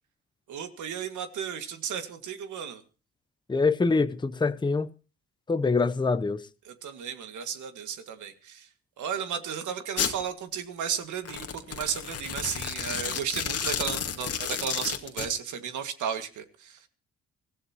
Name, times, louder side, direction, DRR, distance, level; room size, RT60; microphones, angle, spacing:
voice 1, 0.5-2.8 6.6-8.7 9.0-16.8, right 8 dB, 75° right, 2.1 m, -34 dB
voice 2, 3.5-4.9 5.5-6.4, left 4 dB, 15° left, 0.8 m, -24 dB
Domestic sounds home sounds, 10.0-10.2 11.2-15.3, left 7 dB, 55° left, 1.9 m, -31 dB
24.5 x 15.5 x 3.0 m
cardioid pair, 90°, 30 cm